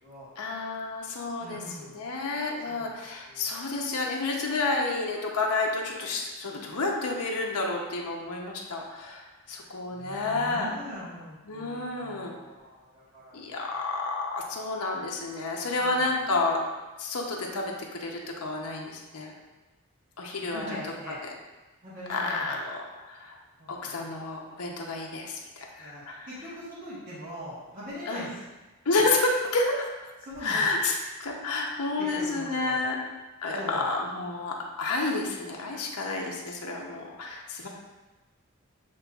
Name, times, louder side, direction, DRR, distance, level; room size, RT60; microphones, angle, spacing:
voice 1, 0.4-1.6 1.9-9.2 9.5-10.7 11.5-12.3 13.3-16.6 17.0-17.7 18.0-19.3 20.2-20.8 22.1-23.4 23.7-26.3 28.1-28.3 28.9-30.1 30.4-32.9 33.4-37.7, left 3 dB, 90° left, -1 dB, 0.7 m, -30 dB
voice 2, 1.4-2.0 2.7-2.9 3.2-3.4 9.9-13.8 15.8-16.1 20.4-21.2 21.8-22.6 23.6-24.1 25.8-28.4 30.2-30.6 32.0-32.9 33.5-33.9 37.5-37.7, equal, 40° right, -10 dB, 1.1 m, -42 dB
7.5 x 3.0 x 2.3 m, 1.2 s
head